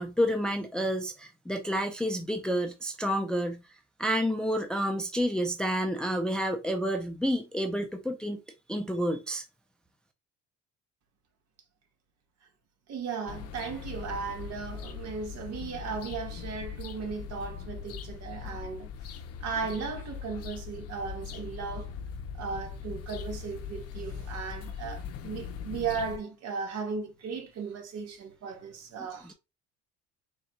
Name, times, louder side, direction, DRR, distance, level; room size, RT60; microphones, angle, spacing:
voice 1, 0.0-3.6 4.0-8.4 8.7-9.4 29.2-29.3, equal, 5° left, 0.5 m, -29 dB
voice 2, 12.9-18.9 19.4-21.9 22.3-29.3, right 5 dB, 55° right, 1.5 m, -36 dB
sound 1, 13.3-26.2, left 7 dB, 55° left, 0.6 m, -40 dB
3.8 x 2.2 x 4.2 m
cardioid pair, 125°, 29 cm